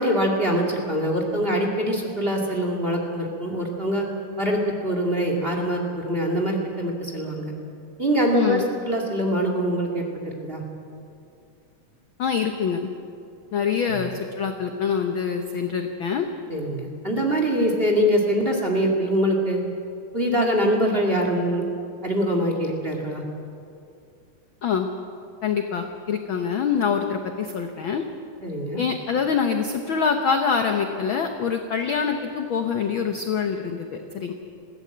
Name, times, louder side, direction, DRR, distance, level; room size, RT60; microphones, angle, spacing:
voice 1, 0.0-4.0 4.4-7.5 8.0-10.6 13.9-14.0 16.5-19.6 20.1-21.7 22.0-23.2 28.4-28.8, equal, 20° right, 1 dB, 2.1 m, -24 dB
voice 2, 8.3-8.6 12.2-12.9 13.5-16.3 24.6-24.9 25.4-28.0 28.8-34.3, left 6 dB, 70° left, 5 dB, 1.2 m, -25 dB
20.0 x 16.0 x 8.6 m, 2.5 s
omnidirectional pair, 3.6 m